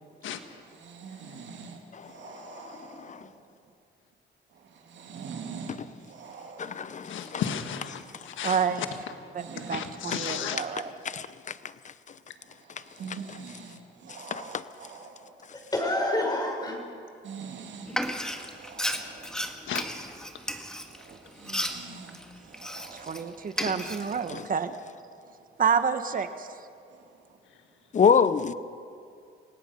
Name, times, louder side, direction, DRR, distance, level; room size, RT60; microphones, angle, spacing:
voice 1, 0.8-1.8 2.1-3.1 4.9-5.8 6.1-6.8 9.4-9.9 12.9-13.8 14.0-15.3 17.2-17.9 18.5-19.3 21.0-22.2 22.4-23.3 26.9-27.0, right 5 dB, 65° right, 3.0 m, -43 dB
voice 2, 2.6-3.2 5.8-5.9 6.6-7.4 10.3-10.4 11.0-11.6 13.1-13.4 14.3-14.4 24.3-24.5 27.9-28.5, left 6 dB, 40° left, 0.9 m, -26 dB
voice 3, 7.0-8.7 9.6-10.6 19.7-19.8, left 8 dB, 75° left, 1.5 m, -34 dB
voice 4, 8.4-8.8 9.3-10.9 21.1-21.2 22.9-24.7 25.6-26.5, right 6 dB, 45° right, 1.4 m, -29 dB
voice 5, 15.5-16.8 17.9-18.1, left 1 dB, 20° left, 5.9 m, -28 dB
Frying (food), 17.9-23.2 23.5-24.4, equal, 5° left, 1.7 m, -34 dB
28.5 x 17.5 x 5.5 m
cardioid pair, 90°, 20 cm